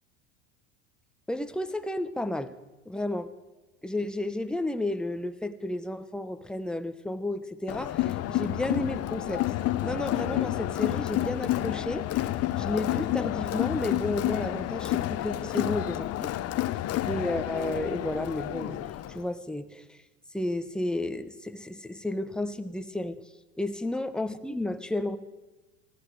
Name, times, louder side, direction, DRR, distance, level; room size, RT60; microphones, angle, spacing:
voice 1, 1.3-2.5 2.8-3.3 3.8-9.4 9.8-12.3 12.6-16.3 17.0-20.0 20.3-23.2 23.6-25.2, left 1 dB, ahead, 9 dB, 1.0 m, -32 dB
Crowd, 7.7-19.2, left 14 dB, 40° left, 0.9 m, -30 dB
19.5 x 14.5 x 4.7 m, 1.2 s
hypercardioid pair, 90°, 36 cm